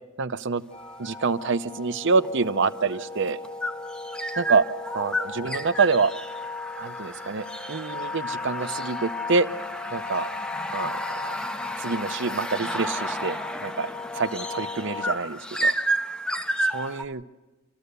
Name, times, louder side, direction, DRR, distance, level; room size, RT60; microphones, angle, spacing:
voice 1, 0.2-0.6 1.0-3.4 4.4-4.6 4.9-6.1 6.8-9.5 9.9-10.3 10.7-11.3 11.8-15.7 16.6-17.2, right 4 dB, 60° right, 12 dB, 0.7 m, -26 dB
sound 1, 0.7-15.2, left 4 dB, 30° left, 0.9 m, -37 dB
sound 2, 0.8-1.2 2.2-17.1, right 1 dB, 5° left, 0.6 m, -32 dB
27.5 x 14.0 x 6.8 m, 1.2 s
head